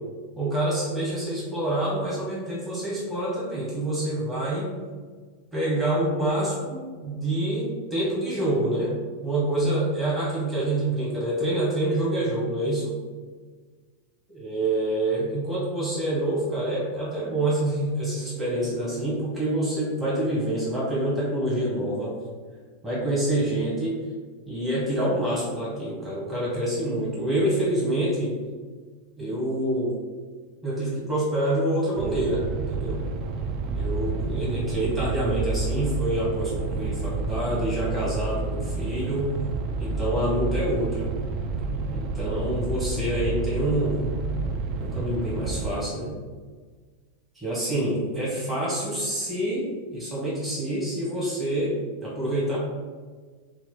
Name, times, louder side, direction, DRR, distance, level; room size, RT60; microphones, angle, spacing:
voice 1, 0.4-4.7 5.5-8.9 9.2-13.0 14.3-22.1 22.8-23.9 24.5-28.3 29.2-29.9 30.6-32.4 32.7-33.0 33.7-39.3 39.8-41.1 41.9-44.0 44.8-46.1 47.3-52.6, right 1 dB, 10° right, -9 dB, 1.5 m, -27 dB
sound 1, 32.0-45.7, right 3 dB, 40° right, 0.3 m, -29 dB
4.4 x 2.3 x 4.0 m, 1.5 s
figure-of-eight pair, 90°, 0 cm